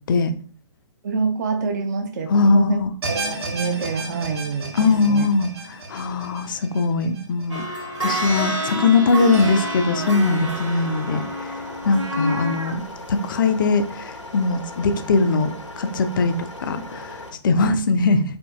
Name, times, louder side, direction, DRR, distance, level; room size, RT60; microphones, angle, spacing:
voice 1, 1.0-2.8 3.1-5.3, right 4 dB, 40° right, 5 dB, 0.4 m, -26 dB
voice 2, 2.3-2.9 4.8-7.6 8.0-11.6 11.9-12.8 13.1-18.2, left 3 dB, 45° left, 9 dB, 0.4 m, -21 dB
sound 1, 3.0-8.2 8.6-8.7 9.3-9.4, right 2 dB, 55° right, 0.9 m, -33 dB
sound 2, 7.5-12.8 13.3-13.4, equal, 85° right, 1.1 m, -28 dB
sound 3, 10.0-17.3, left 2 dB, 85° left, 0.7 m, -38 dB
4.2 x 2.6 x 2.3 m, 0.43 s
figure-of-eight pair, 125°, 15 cm